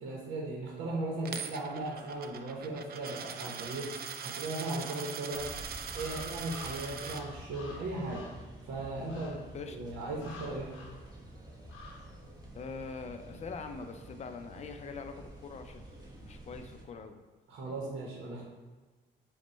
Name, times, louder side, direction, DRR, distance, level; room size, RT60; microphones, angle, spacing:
voice 1, 0.0-3.9 4.2-5.5 5.9-8.2 8.6-9.4 9.7-10.7 17.5-18.4, right 2 dB, 80° right, -3 dB, 0.9 m, -37 dB
Coin (dropping), 1.3-7.2, right 7 dB, 50° right, 0.4 m, -41 dB
sound 1, 3.9-4.6 5.2-8.5 9.1-9.5 10.2-11.0 11.7-12.1, left 3 dB, 80° left, 0.7 m, -50 dB
sound 2, 5.3-16.8, right 1 dB, 20° right, 1.0 m, -49 dB
voice 2, 12.5-15.9 16.2-17.2, left 4 dB, 35° left, 7 dB, 0.4 m, -43 dB
5.1 x 2.2 x 4.3 m, 1.3 s
cardioid pair, 90°, 20 cm